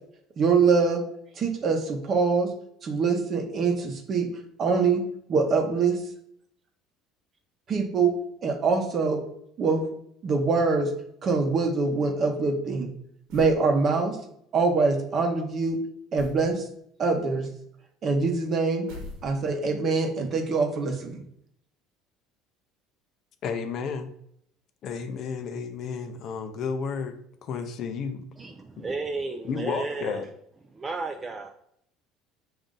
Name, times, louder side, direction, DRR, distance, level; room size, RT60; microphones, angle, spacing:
voice 1, 0.4-1.0 1.4-2.5 2.8-4.3 4.6-5.0 5.3-6.0 7.7-8.1 8.4-9.2 9.6-9.8 10.2-10.9 11.2-12.9 13.3-14.2 14.5-15.8 16.1-16.6 17.0-17.5 18.0-18.9 19.2-21.2, right 4 dB, 40° right, 5 dB, 0.8 m, -24 dB
sound 1, 13.3-13.7 16.2-16.5 18.9-19.7, left 1 dB, 75° right, 1.1 m, -42 dB
voice 2, 23.4-24.1 24.8-28.2 28.8-28.9 29.4-30.3, left 6 dB, 50° left, 8 dB, 0.5 m, -32 dB
voice 3, 28.4-30.3 30.7-31.5, right 3 dB, 20° right, 4 dB, 0.4 m, -33 dB
5.1 x 2.6 x 3.7 m, 0.72 s
cardioid pair, 120°, 0 cm